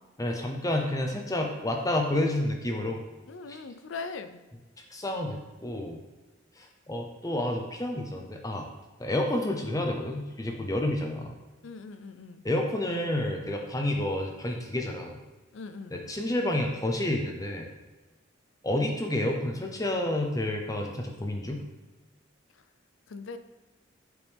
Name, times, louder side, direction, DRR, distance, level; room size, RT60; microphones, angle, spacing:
voice 1, 0.2-3.0 3.5-3.6 4.9-6.0 6.6-8.7 9.0-11.3 12.4-15.2 15.9-17.7 18.6-21.6, left 1 dB, 15° left, 2 dB, 0.7 m, -29 dB
voice 2, 3.3-4.4 11.6-12.4 15.5-16.0 22.5-22.6 23.1-23.4, left 4 dB, 75° left, 10 dB, 0.5 m, -40 dB
7.9 x 5.2 x 3.5 m, 1.2 s
head